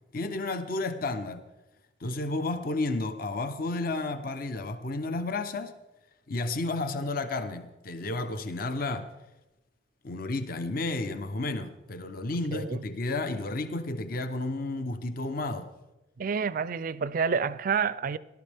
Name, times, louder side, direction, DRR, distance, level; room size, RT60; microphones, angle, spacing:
voice 1, 0.1-1.5 2.0-5.7 6.3-9.1 10.0-15.7, left 2 dB, 50° left, 0.7 m, -32 dB
voice 2, 12.5-12.8 16.2-18.2, right 6 dB, 45° right, 0.4 m, -28 dB
19.0 x 12.0 x 3.4 m
head